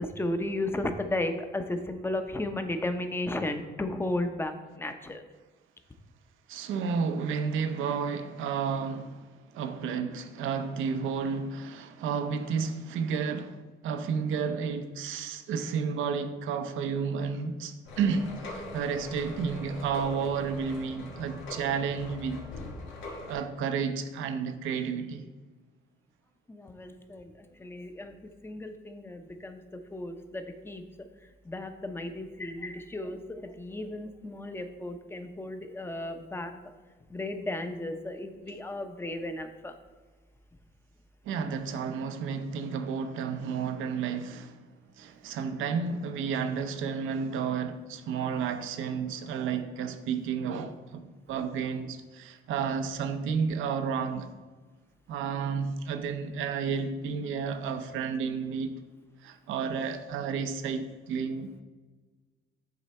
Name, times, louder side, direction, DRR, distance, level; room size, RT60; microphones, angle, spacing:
voice 1, 0.0-5.2 26.5-29.6 29.9-30.8 31.4-36.5 37.1-39.7, left 1 dB, 10° left, 0.7 m, -34 dB
voice 2, 6.5-13.6 13.8-22.4 23.3-25.2 41.2-44.7 45.0-51.0 51.3-54.3 55.1-58.8 59.2-61.6, right 6 dB, 85° right, 0.6 m, -31 dB
sound 1, 17.8-23.3, left 2 dB, 90° left, 1.2 m, -42 dB
9.1 x 3.3 x 4.2 m
cardioid pair, 90°, 20 cm